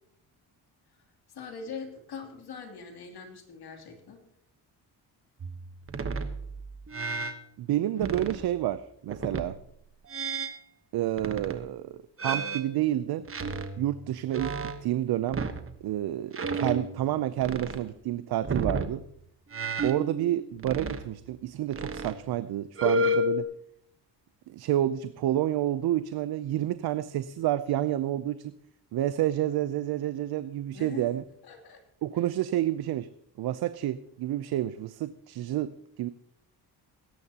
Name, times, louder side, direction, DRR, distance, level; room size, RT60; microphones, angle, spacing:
voice 1, 1.3-4.2 30.7-31.2 31.4-31.8 32.1-32.3, left 5 dB, 60° left, 3 dB, 3.0 m, -42 dB
sound 1, 5.4-7.4 8.0-8.5 9.1-9.6 10.1-10.6 11.2-11.6 12.2-14.9 15.3-15.8 16.3-17.1 17.4-17.8 18.4-18.9 19.5-21.4 21.7-22.2 22.8-23.4, right 1 dB, 30° right, 1.1 m, -32 dB
voice 2, 7.6-9.6 10.9-13.2 13.8-14.5 14.8-15.4 15.8-19.0 19.8-23.4 24.5-28.5 28.9-31.2 32.0-33.1 33.4-35.7 36.0-36.1, right 13 dB, 60° right, 14 dB, 0.6 m, -29 dB
20.0 x 10.5 x 2.9 m, 0.74 s
cardioid pair, 80°, 42 cm